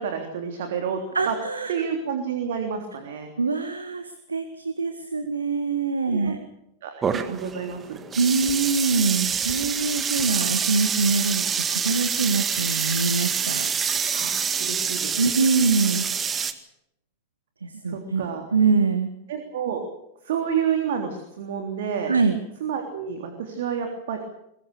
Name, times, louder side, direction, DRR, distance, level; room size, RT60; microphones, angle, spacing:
voice 1, 0.0-1.3 1.7-3.3 6.1-6.3 6.8-8.0 14.1-14.3 14.6-15.2 17.9-18.5 19.3-19.8 20.2-22.1 22.6-24.2, right 7 dB, 55° right, 4 dB, 3.3 m, -29 dB
voice 2, 1.1-1.7 3.4-6.4 8.1-13.7 15.2-16.1 17.6-18.2 18.5-19.1 22.1-22.4, right 4 dB, 75° right, 9 dB, 1.7 m, -24 dB
sound 1, 7.0-16.5, right 6 dB, 20° right, 1.9 m, -26 dB
22.5 x 22.0 x 6.8 m, 0.81 s
figure-of-eight pair, 90°, 0 cm